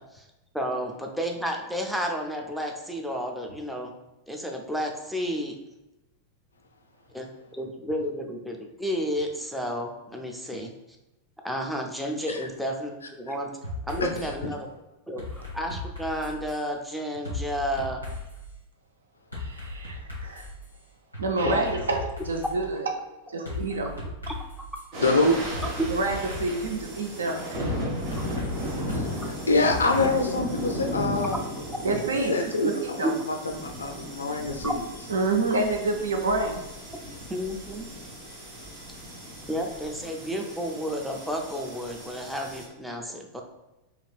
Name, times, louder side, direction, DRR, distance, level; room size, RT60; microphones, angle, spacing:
voice 1, 0.5-3.9 4.3-5.6 7.1-10.7 11.4-13.5 13.9-14.7 15.1-18.0 21.4-21.6 24.3-24.4 28.1-28.3 34.6-34.7 37.3-37.9 39.5-43.4, equal, ahead, 1 dB, 0.5 m, -31 dB
sound 1, 13.6-14.3 15.2-16.6 17.2-18.4 19.3-20.6 21.1-22.6 23.5-24.8 25.5-26.7 27.6-30.1, left 2 dB, 90° right, 1.1 m, -37 dB
voice 2, 19.4-20.4 21.2-22.9 23.3-24.0 25.9-27.4 31.8-32.5 33.0-33.1 35.1-36.6, right 3 dB, 70° right, 3 dB, 0.4 m, -28 dB
sound 2, 24.9-42.7, equal, 45° right, 0.9 m, -36 dB
voice 3, 25.0-25.4 28.9-29.1 29.5-31.4 32.2-32.7 33.0-34.8, left 2 dB, 75° left, 5 dB, 0.3 m, -25 dB
3.1 x 2.9 x 2.3 m, 0.99 s
figure-of-eight pair, 90°, 0 cm